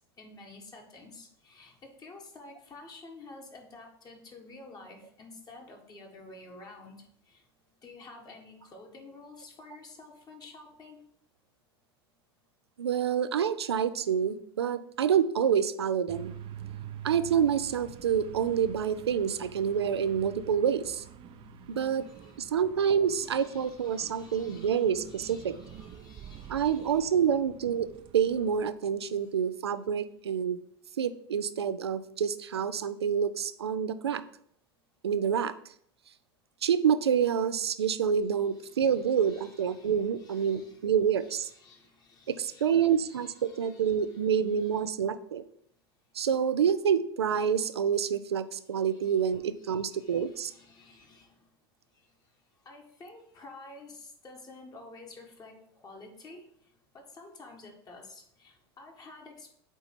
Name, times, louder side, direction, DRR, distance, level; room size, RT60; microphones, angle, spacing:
voice 1, 0.2-7.4 7.8-11.0 21.9-22.5 23.0-27.1 29.0-29.3 38.5-44.9 48.8-51.5 51.9-52.1 52.6-59.5, left 2 dB, 30° left, 1 dB, 1.4 m, -51 dB
voice 2, 12.8-16.3 17.0-21.0 21.7-22.1 22.4-25.6 26.5-27.9 28.1-30.6 31.0-34.2 35.0-35.5 36.6-41.5 42.3-45.4 46.1-50.5, right 8 dB, 90° right, 13 dB, 0.4 m, -27 dB
sound 1, 16.1-28.7, right 9 dB, 40° right, 0.6 m, -47 dB
8.0 x 2.8 x 4.3 m, 0.67 s
hypercardioid pair, 85°, 13 cm